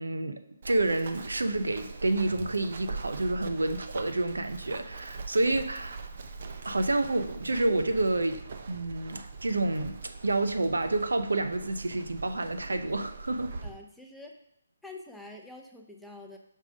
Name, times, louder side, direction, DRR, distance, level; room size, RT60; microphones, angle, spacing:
voice 1, 0.0-6.0 6.6-13.5, right 2 dB, 90° right, 9 dB, 0.6 m, -29 dB
Run, 0.6-13.7, right 4 dB, 50° right, 0.7 m, -42 dB
voice 2, 13.6-14.3 14.8-16.4, left 2 dB, ahead, 0 dB, 0.6 m, -46 dB
5.5 x 4.8 x 5.1 m, 0.75 s
hypercardioid pair, 155°, 0 cm